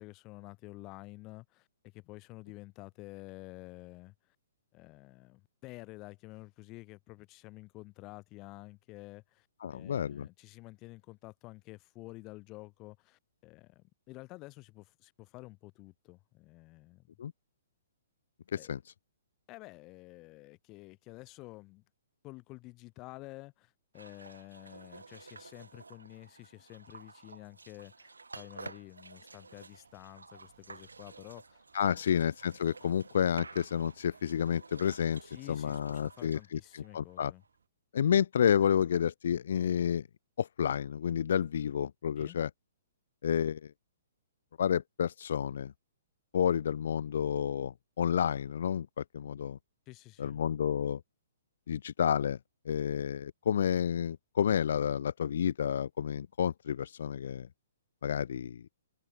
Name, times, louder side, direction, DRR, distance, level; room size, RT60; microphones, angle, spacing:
voice 1, 0.0-1.7 1.9-4.1 4.7-9.5 9.7-17.1 18.6-18.7 19.5-21.8 22.2-31.6 35.2-37.4 42.2-42.4 49.9-50.4, left 22 dB, 30° left, 2.1 m, -50 dB
voice 2, 9.6-10.3 17.2-17.3 18.5-18.8 31.7-37.3 37.9-40.1 40.4-42.5 43.2-43.7 44.6-45.7 46.3-49.6 50.2-51.0 51.7-52.4 52.6-57.5 58.0-58.6, left 8 dB, 60° left, 0.7 m, -30 dB
sound 1, 23.9-37.5, right 3 dB, 85° right, 5.4 m, -51 dB
sound 2, 28.5-37.7, right 9 dB, 60° right, 6.2 m, -68 dB
figure-of-eight pair, 125°, 0 cm